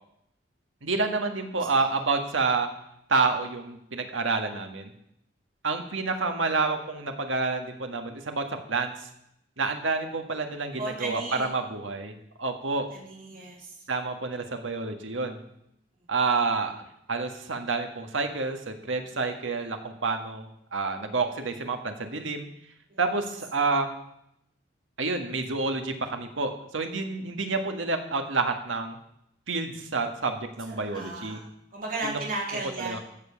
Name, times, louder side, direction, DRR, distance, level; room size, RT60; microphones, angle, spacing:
voice 1, 0.8-2.7 3.1-4.9 5.6-9.1 9.6-12.9 13.9-15.4 16.1-16.7 17.1-22.5 23.0-23.9 25.0-29.0 29.5-31.4 32.0-32.2 32.8-33.0, right 3 dB, 85° right, 5 dB, 1.8 m, -29 dB
voice 2, 10.8-11.5 12.9-13.7 22.9-23.0 30.7-31.5 31.7-33.0, right 2 dB, 45° right, -2 dB, 3.6 m, -35 dB
14.0 x 7.2 x 7.3 m, 0.76 s
head